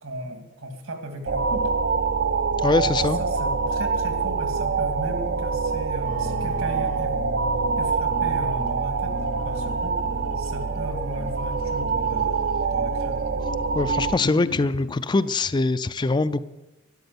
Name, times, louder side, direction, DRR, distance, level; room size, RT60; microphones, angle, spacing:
voice 1, 0.0-1.7 3.2-7.2 7.8-9.2 9.4-10.0 10.4-13.2, right 1 dB, 70° right, 5 dB, 2.4 m, -36 dB
sound 1, 1.3-14.2, right 5 dB, 50° right, 0.5 m, -25 dB
voice 2, 2.6-3.2 13.7-16.4, left 3 dB, 20° left, 14 dB, 0.4 m, -23 dB
sound 2, 6.0-14.9, left 3 dB, 65° left, 0.9 m, -39 dB
12.0 x 10.5 x 8.3 m, 1.1 s
head